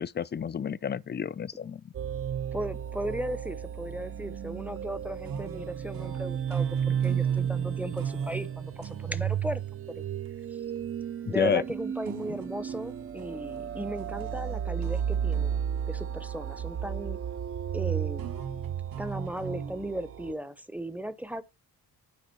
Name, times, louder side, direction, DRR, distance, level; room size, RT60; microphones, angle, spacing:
voice 1, 0.0-1.9 11.3-11.6, left 7 dB, 30° left, 0.4 m, -30 dB
sound 1, 1.9-20.3, right 8 dB, 35° right, 0.4 m, -33 dB
voice 2, 2.5-10.0 11.3-15.5 15.9-17.2 17.7-18.3 19.0-21.4, right 1 dB, 5° right, 0.7 m, -36 dB
sound 2, 5.3-9.7 10.3-10.4 12.1-16.7 17.8-19.8, right 6 dB, 60° right, 1.4 m, -41 dB
9.7 x 3.9 x 5.4 m
cardioid pair, 85°, 39 cm